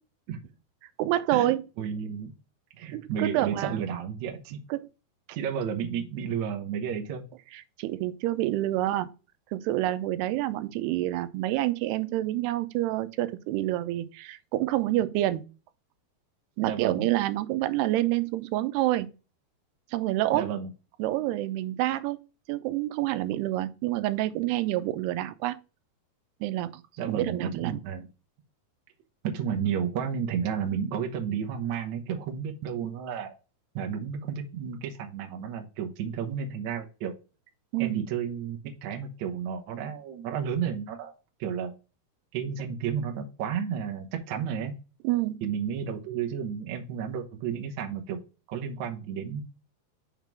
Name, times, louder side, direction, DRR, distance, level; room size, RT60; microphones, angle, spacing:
voice 1, 1.0-1.6 2.9-3.8 4.7-4.8 7.8-9.1 9.5-15.4 16.6-19.1 19.9-20.5 21.0-22.2 22.5-25.6 26.4-26.8 27.1-27.8 37.7-38.0 45.0-45.4, right 15 dB, 90° right, 2.7 m, -27 dB
voice 2, 1.8-2.3 2.8-4.6 5.3-7.2 16.6-17.1 20.3-20.7 27.0-28.1 29.2-33.3 33.7-37.1 37.8-41.1 41.4-41.7 42.3-44.7 45.4-48.2 48.5-49.4, right 7 dB, 70° right, 1.7 m, -32 dB
6.4 x 3.7 x 5.9 m
omnidirectional pair, 4.6 m